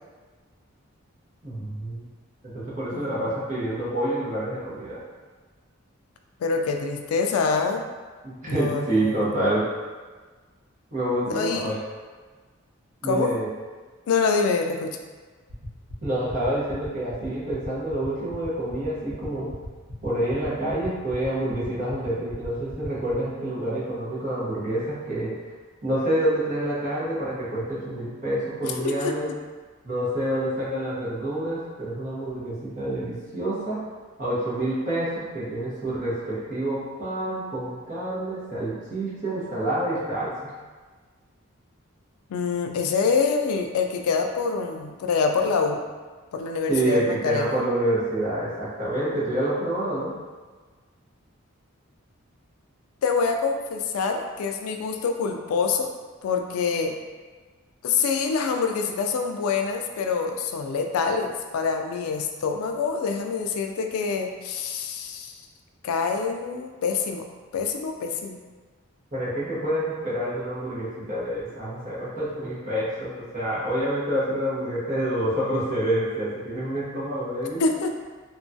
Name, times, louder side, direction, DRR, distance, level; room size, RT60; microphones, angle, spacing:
voice 1, 1.4-2.1 2.5-5.0 8.2-9.6 10.9-11.8 13.0-13.5 16.0-19.5 20.0-25.3 25.8-29.3 29.8-33.8 34.2-40.3 46.7-50.1 69.1-77.6, right 1 dB, 35° right, -9 dB, 0.9 m, -27 dB
voice 2, 2.9-3.3 6.4-7.8 8.5-9.4 11.3-11.7 13.0-13.3 14.1-15.0 28.8-29.1 42.3-45.8 46.3-47.6 53.0-55.9 56.2-56.9 57.8-65.3 65.8-67.3 67.5-68.4 77.6-77.9, left 5 dB, 85° left, 5 dB, 0.3 m, -26 dB
sound 1, 15.5-23.1, left 1 dB, 80° right, 0.9 m, -41 dB
2.9 x 2.3 x 2.6 m, 1.4 s
head